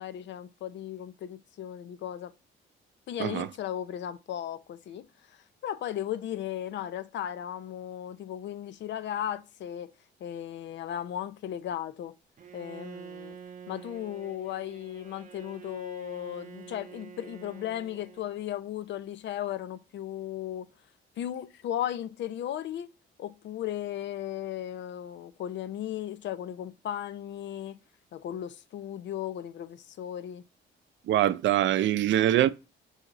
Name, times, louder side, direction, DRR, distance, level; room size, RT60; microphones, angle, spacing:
voice 1, 0.0-2.3 3.1-5.4 5.6-9.9 10.2-12.1 12.5-13.4 13.7-20.7 21.2-22.9 23.2-27.8 28.1-30.4, left 11 dB, 65° left, 0.5 m, -36 dB
Bowed string instrument, 12.4-18.7, right 7 dB, 40° right, 0.7 m, -47 dB
voice 2, 31.1-32.5, right 12 dB, 70° right, 0.4 m, -23 dB
5.8 x 2.8 x 2.9 m
cardioid pair, 90°, 20 cm